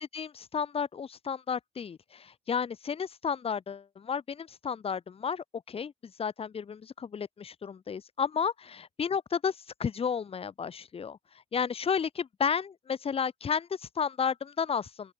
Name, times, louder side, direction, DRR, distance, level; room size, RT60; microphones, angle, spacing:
voice 1, 0.1-11.2 11.5-15.1, left 6 dB, 35° left, 1.8 m, -32 dB
open air
cardioid pair, 110°, 17 cm